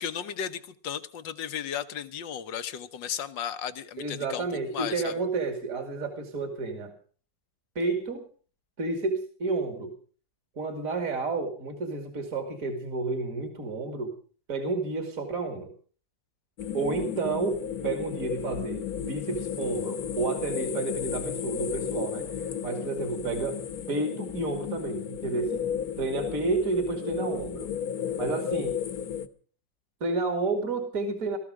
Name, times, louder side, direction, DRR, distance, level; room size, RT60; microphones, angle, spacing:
voice 1, 0.0-4.5 4.7-5.2, left 9 dB, 80° left, 12 dB, 1.8 m, -35 dB
voice 2, 4.0-6.9 7.8-8.2 8.8-9.9 10.6-14.1 14.5-15.7 16.7-18.8 19.1-22.3 22.6-23.6 23.9-25.7 26.0-27.7 28.2-28.8 30.0-31.4, right 3 dB, 45° right, 6 dB, 2.8 m, -30 dB
sound 1, 16.6-29.3, left 8 dB, 55° left, 1.6 m, -34 dB
19.5 x 14.5 x 5.0 m, 0.42 s
omnidirectional pair, 2.0 m